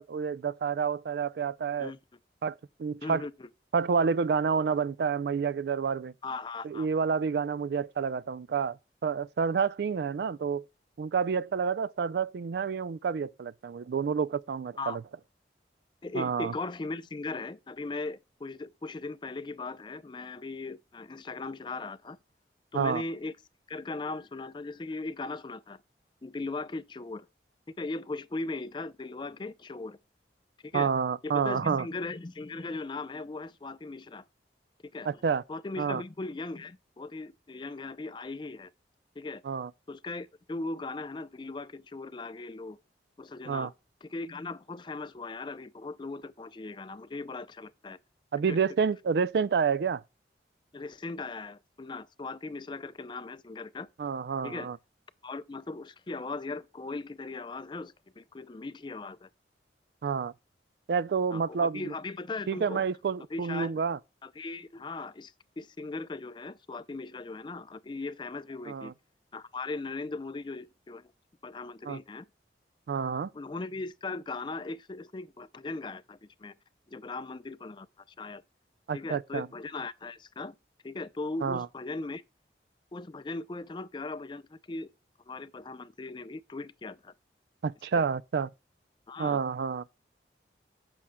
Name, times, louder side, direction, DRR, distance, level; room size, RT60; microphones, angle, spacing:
voice 1, 0.0-1.9 2.4-3.2 3.7-6.1 6.6-8.8 9.0-10.6 11.0-15.0 16.1-16.5 22.7-23.0 30.7-31.9 35.1-35.4 35.8-36.0 39.4-39.7 43.5-43.7 48.3-50.0 54.0-54.8 60.0-60.3 60.9-61.9 62.5-64.0 68.7-68.9 71.9-72.0 72.9-73.3 78.9-79.5 81.4-81.7 87.6-88.5 89.2-89.8, right 6 dB, 65° right, 0.3 m, -29 dB
voice 2, 3.0-3.5 6.2-6.9 14.8-15.0 16.0-22.2 22.7-23.3 23.7-25.8 26.2-27.3 27.8-30.0 30.6-30.9 31.2-34.2 34.8-35.1 35.5-38.7 39.2-39.4 39.9-42.8 43.2-43.7 44.0-48.0 48.5-48.6 50.7-53.9 54.4-54.7 55.2-59.3 61.3-62.9 63.3-63.7 64.2-68.9 69.3-71.1 71.4-72.3 73.3-76.5 76.9-77.9 78.2-78.4 78.9-80.5 80.8-82.2 82.9-84.9 85.3-87.1 87.9-88.0 89.1-89.4, left 3 dB, 25° left, 0.4 m, -38 dB
14.0 x 6.1 x 2.2 m
head